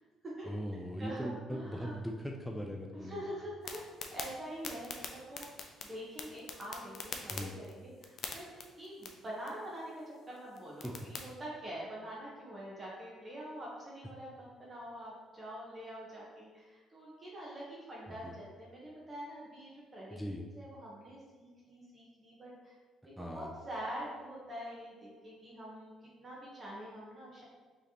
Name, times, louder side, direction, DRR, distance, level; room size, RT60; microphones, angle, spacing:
voice 1, 0.4-3.2 7.3-7.5 10.8-10.9 18.2-18.3 20.1-20.4 23.2-23.5, equal, ahead, 1 dB, 0.4 m, -39 dB
voice 2, 1.0-1.9 2.9-3.8 4.1-5.5 5.8-8.4 8.8-20.2 20.6-22.7 23.0-27.4, equal, 30° right, -5 dB, 1.0 m, -45 dB
sound 1, 3.6-11.3, left 5 dB, 55° left, 0.5 m, -46 dB
4.8 x 3.2 x 2.9 m, 1.5 s
cardioid pair, 100°, 0 cm